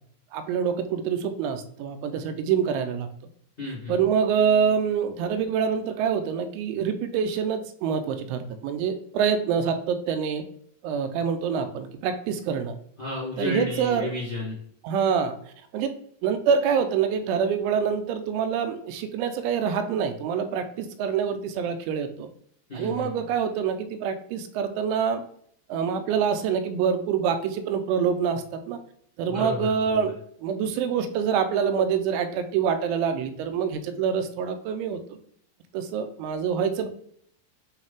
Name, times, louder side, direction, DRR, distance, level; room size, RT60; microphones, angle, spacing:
voice 1, 0.3-3.1 3.9-10.4 10.8-12.8 13.4-14.1 14.8-15.3 15.7-15.9 16.2-22.3 22.7-25.2 25.7-28.8 29.2-30.2 30.4-35.2 35.7-36.9, right 7 dB, 85° right, 8 dB, 3.0 m, -26 dB
voice 2, 3.6-3.9 13.0-14.5 22.7-23.1 29.2-30.0, left 2 dB, 45° left, -6 dB, 0.8 m, -32 dB
8.9 x 3.3 x 3.5 m, 0.64 s
omnidirectional pair, 5.5 m